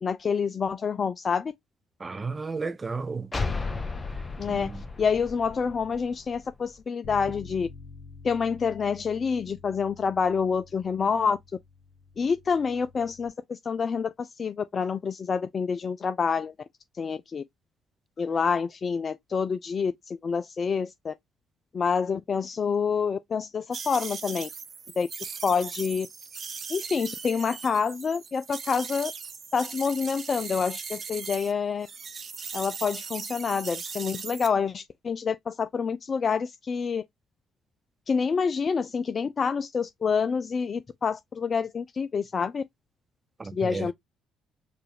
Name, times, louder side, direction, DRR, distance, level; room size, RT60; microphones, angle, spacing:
voice 1, 0.0-1.5 4.4-4.7 5.0-7.7 8.2-11.4 12.2-16.5 17.0-17.4 18.2-21.1 21.7-24.5 25.0-25.1 25.4-26.1 26.7-29.1 29.5-31.9 32.5-37.0 38.1-42.6 43.5-43.9, left 6 dB, 40° left, 0.3 m, -27 dB
voice 2, 2.0-3.3 4.5-4.8 43.4-43.9, right 4 dB, 30° right, 0.4 m, -33 dB
sound 1, 3.3-6.8, left 3 dB, 20° left, 0.9 m, -34 dB
Bass guitar, 7.0-13.3, left 4 dB, 70° left, 1.1 m, -48 dB
sound 2, 23.7-31.5 31.8-34.5, right 5 dB, 45° right, 0.8 m, -39 dB
4.6 x 2.4 x 3.2 m
hypercardioid pair, 55°, 0 cm